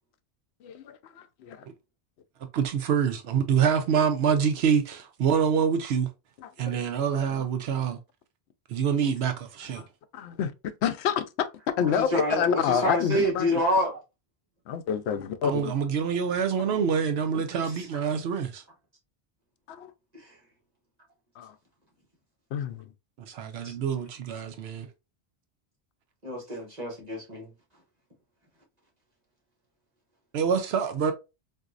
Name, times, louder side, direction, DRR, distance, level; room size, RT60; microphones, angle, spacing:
voice 1, 0.6-1.6 6.4-6.8 9.8-9.9 10.1-11.2 11.8-13.5 14.7-15.7 19.7-19.9 21.4-21.5 22.5-22.9, left 7 dB, 80° left, 0.8 m, -28 dB
voice 2, 2.5-6.1 6.6-8.0 8.7-9.8 15.4-18.6 23.2-24.9 30.3-31.1, right 7 dB, 75° right, 0.8 m, -26 dB
voice 3, 11.8-14.0 17.5-18.0 20.1-20.3 23.6-23.7 26.2-27.5, equal, 40° right, 1.4 m, -28 dB
4.0 x 2.6 x 2.4 m
omnidirectional pair, 1.1 m